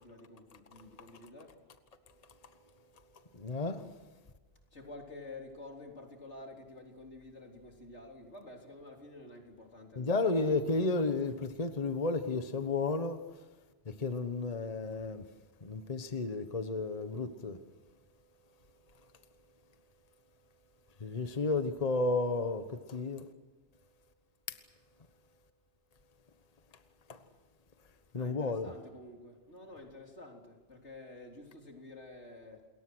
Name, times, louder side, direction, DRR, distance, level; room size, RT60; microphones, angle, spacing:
voice 1, 0.0-1.6 4.7-10.5 28.1-32.7, left 2 dB, 85° left, 4.1 m, -50 dB
voice 2, 3.3-3.9 10.0-13.2 13.8-15.2 15.6-17.6 21.0-23.3 24.5-24.6 27.1-27.2 28.1-28.7, left 3 dB, 35° left, 1.3 m, -32 dB
28.0 x 22.0 x 6.3 m
omnidirectional pair, 1.1 m